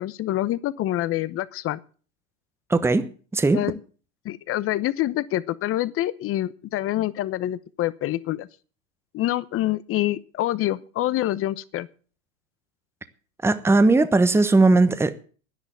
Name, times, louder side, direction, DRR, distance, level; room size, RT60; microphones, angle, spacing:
voice 1, 0.0-1.8 3.5-3.8 4.2-8.5 9.1-11.9, left 14 dB, 35° left, 0.9 m, -26 dB
voice 2, 2.7-3.6 13.4-15.1, right 3 dB, 5° right, 1.0 m, -18 dB
10.5 x 10.5 x 7.9 m
hypercardioid pair, 110°, 40 cm